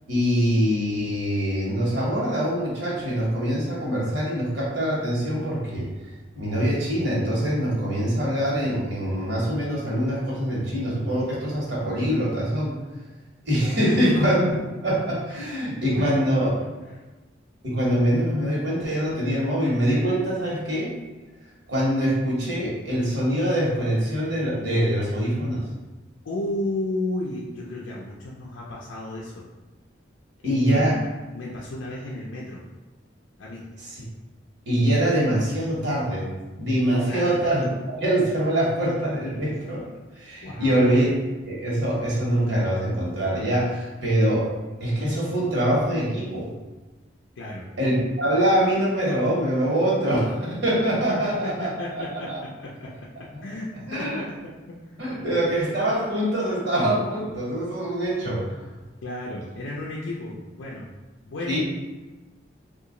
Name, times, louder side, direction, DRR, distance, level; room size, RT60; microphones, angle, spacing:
voice 1, 0.1-5.9 6.3-12.7 13.4-14.6 14.8-16.5 17.6-20.9 21.7-25.6 30.4-31.0 34.7-36.3 36.6-39.8 40.2-41.1 41.4-44.5 44.8-46.5 47.8-52.4 53.3-53.4 53.9-54.2 55.0-58.6 61.5-61.6, equal, 65° right, -5 dB, 1.2 m, -24 dB
voice 2, 13.8-14.2 16.0-16.1 16.6-17.0 26.2-29.4 30.4-31.0 31.3-32.6 33.4-33.7 37.1-37.4 40.4-41.1 47.4-47.7 51.1-54.8 59.0-60.9 61.2-61.6, left 2 dB, 85° left, -4 dB, 0.5 m, -33 dB
2.8 x 2.4 x 3.7 m, 1.2 s
head